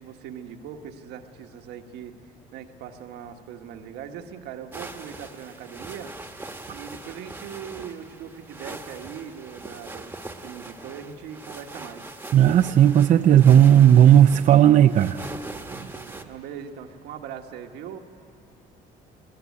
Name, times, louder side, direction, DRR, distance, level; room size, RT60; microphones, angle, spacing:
voice 1, 0.0-2.2 2.5-6.1 6.7-12.1 16.3-18.0, right 8 dB, 85° right, 5 dB, 1.4 m, -40 dB
sound 1, 4.7-16.2, right 2 dB, 10° right, 1.2 m, -41 dB
voice 2, 12.3-15.2 15.7-15.9, right 10 dB, 50° right, 8 dB, 0.5 m, -15 dB
20.0 x 20.0 x 9.5 m, 2.8 s
cardioid pair, 110°, 17 cm